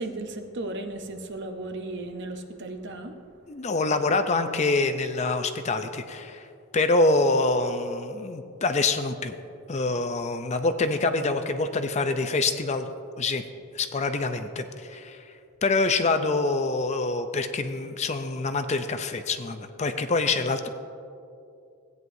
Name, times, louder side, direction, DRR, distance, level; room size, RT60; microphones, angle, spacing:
voice 1, 0.0-3.2, right 2 dB, 55° right, 6 dB, 0.8 m, -35 dB
voice 2, 3.5-6.5 6.7-9.4 9.7-12.9 13.2-13.4 13.7-15.3 15.6-20.7, left 3 dB, 30° left, 8 dB, 0.5 m, -26 dB
16.5 x 9.4 x 2.7 m, 2.5 s
head